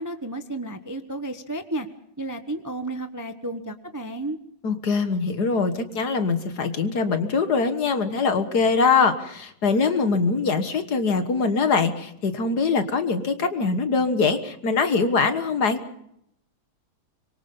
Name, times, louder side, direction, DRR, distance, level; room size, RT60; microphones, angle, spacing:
voice 1, 0.0-1.9 2.2-4.4, right 1 dB, 15° right, 7 dB, 0.8 m, -32 dB
voice 2, 4.6-15.8, left 4 dB, 55° left, 9 dB, 2.0 m, -23 dB
25.5 x 23.0 x 5.5 m, 0.74 s
omnidirectional pair, 2.2 m